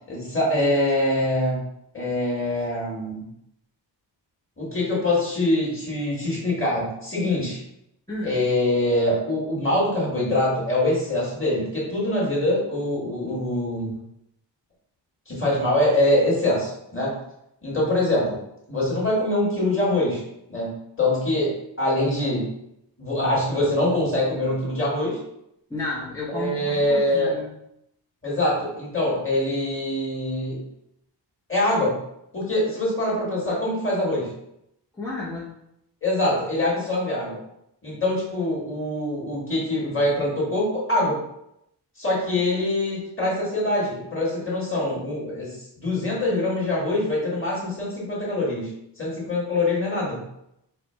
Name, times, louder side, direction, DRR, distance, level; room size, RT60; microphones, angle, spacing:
voice 1, 0.1-1.6 1.9-3.3 4.6-7.6 8.2-13.9 15.3-17.1 17.6-18.4 18.7-20.2 20.5-21.5 21.8-22.5 23.0-25.2 26.3-27.3 28.2-30.6 31.5-32.0 32.3-34.3 36.0-37.4 37.8-41.2 42.0-48.7 49.0-50.2, left 1 dB, 30° left, -6 dB, 1.6 m, -24 dB
voice 2, 8.1-8.4 25.7-27.5 35.0-35.5, left 2 dB, 10° left, -8 dB, 0.6 m, -32 dB
4.3 x 2.1 x 4.3 m, 0.80 s
wide cardioid pair, 160°, 45 cm